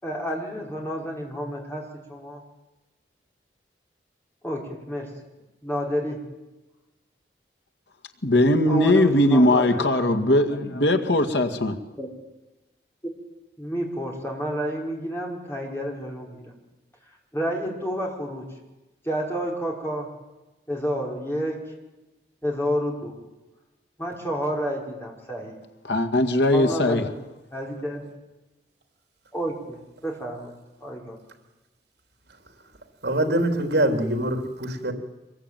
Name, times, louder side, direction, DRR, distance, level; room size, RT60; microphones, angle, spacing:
voice 1, 0.0-1.8 2.1-2.4 4.4-5.1 5.6-6.2 8.7-10.3 11.9-12.1 13.6-16.4 17.3-18.4 19.0-20.1 20.7-21.6 22.4-23.1 24.0-25.6 26.5-27.1 27.5-28.0 29.3-29.8 30.0-30.5 30.8-31.2, equal, 15° left, 5.4 m, -30 dB
voice 2, 8.2-11.8 25.8-27.1, left 1 dB, 85° left, 2.1 m, -20 dB
voice 3, 33.0-34.9, right 1 dB, 75° right, 3.5 m, -24 dB
25.5 x 22.0 x 9.3 m
head